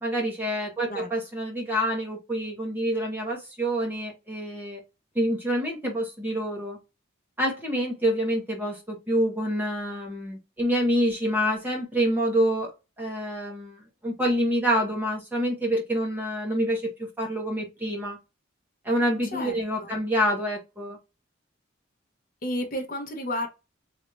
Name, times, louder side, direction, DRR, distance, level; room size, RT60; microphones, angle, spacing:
voice 1, 0.0-4.8 5.1-6.8 7.4-12.7 13.0-18.2 18.8-21.0, equal, 10° right, 1.2 m, -27 dB
voice 2, 19.3-19.9 22.4-23.5, left 1 dB, 45° left, 0.9 m, -32 dB
3.2 x 2.7 x 3.2 m
head